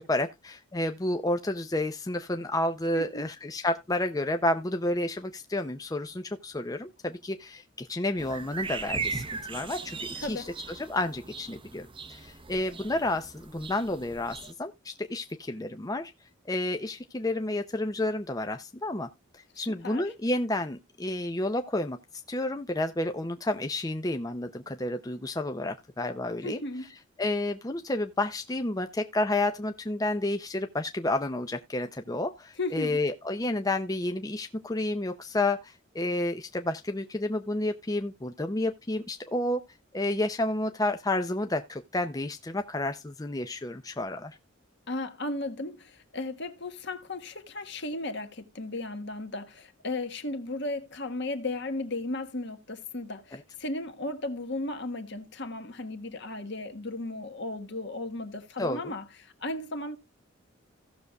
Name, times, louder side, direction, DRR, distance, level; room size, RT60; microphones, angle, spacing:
voice 1, 0.0-10.5 10.8-16.1 16.5-19.1 19.6-22.0 22.3-26.6 27.2-39.6 39.9-44.4 58.6-58.9, left 1 dB, 20° left, 0.5 m, -30 dB
voice 2, 2.9-3.3 10.1-10.5 19.6-20.1 26.4-26.9 32.6-33.0 44.9-60.0, left 2 dB, 60° left, 1.5 m, -35 dB
sound 1, 8.2-14.5, right 4 dB, 25° right, 0.7 m, -38 dB
16.5 x 6.6 x 2.3 m
head